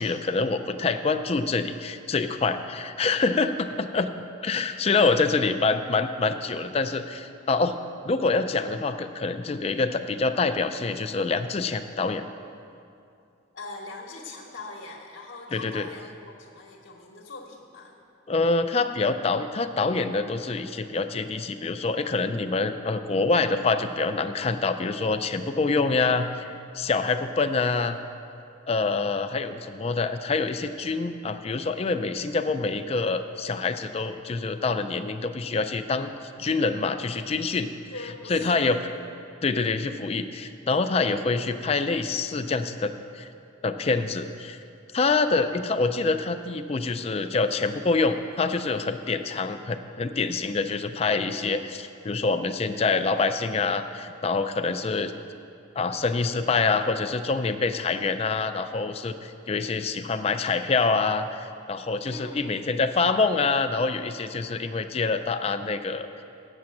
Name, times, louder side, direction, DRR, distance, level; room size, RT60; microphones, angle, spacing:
voice 1, 0.0-4.1 4.4-7.8 8.0-12.2 15.5-15.9 18.3-28.0 28.7-36.1 36.4-37.7 38.3-38.8 39.4-43.3 43.6-44.6 44.9-55.1 55.8-66.1, left 4 dB, 30° left, 9 dB, 0.4 m, -26 dB
voice 2, 4.9-5.4 13.5-17.9 37.9-38.6 39.0-39.1 62.0-62.6, left 2 dB, 65° left, -1 dB, 1.0 m, -42 dB
8.4 x 7.2 x 7.7 m, 2.5 s
head